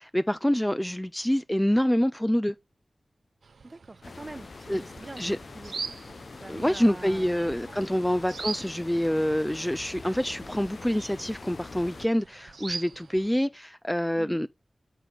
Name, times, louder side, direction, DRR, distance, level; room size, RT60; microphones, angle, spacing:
voice 1, 0.0-2.5 4.7-4.8 5.2-5.4 6.5-14.5, equal, 5° left, 0.4 m, -26 dB
sound 1, 3.4-13.4, right 4 dB, 80° right, 0.5 m, -43 dB
voice 2, 3.6-5.8 6.3-7.6 14.2-14.4, right 2 dB, 35° right, 0.8 m, -44 dB
sound 2, 4.0-12.1, left 3 dB, 60° left, 0.7 m, -44 dB
7.6 x 6.9 x 3.9 m
wide cardioid pair, 80°, 0 cm